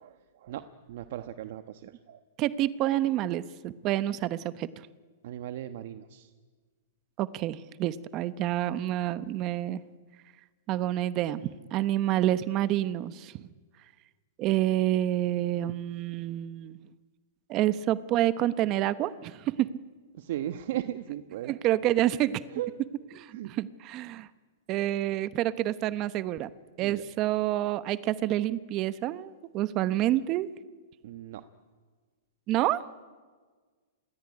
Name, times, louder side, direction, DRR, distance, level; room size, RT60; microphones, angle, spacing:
voice 1, 0.0-2.2 5.2-6.3 20.1-21.5 22.5-22.7 23.3-23.5 26.8-27.0 31.0-31.4, right 12 dB, 55° right, 10 dB, 1.2 m, -37 dB
voice 2, 2.4-4.7 7.2-9.8 10.7-13.5 14.4-16.8 17.5-19.7 21.4-22.4 23.1-24.3 24.7-26.5 26.8-30.5 32.5-32.9, right 13 dB, 30° right, 15 dB, 0.9 m, -28 dB
26.0 x 21.5 x 9.7 m, 1.5 s
hypercardioid pair, 145°, 0 cm